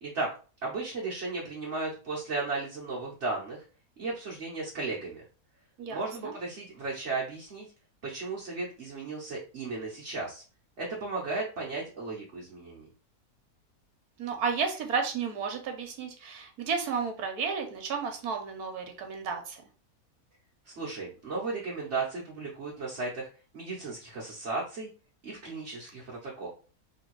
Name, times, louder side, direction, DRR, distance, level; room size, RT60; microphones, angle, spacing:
voice 1, 0.6-3.6 4.0-5.2 5.9-7.7 8.0-10.4 10.8-12.9 20.6-23.3 23.5-24.9 25.2-26.5, right 3 dB, 50° right, -4 dB, 1.2 m, -35 dB
voice 2, 5.8-6.3 14.2-19.6, right 5 dB, 75° right, 4 dB, 1.4 m, -32 dB
3.4 x 2.9 x 4.6 m, 0.37 s
omnidirectional pair, 1.6 m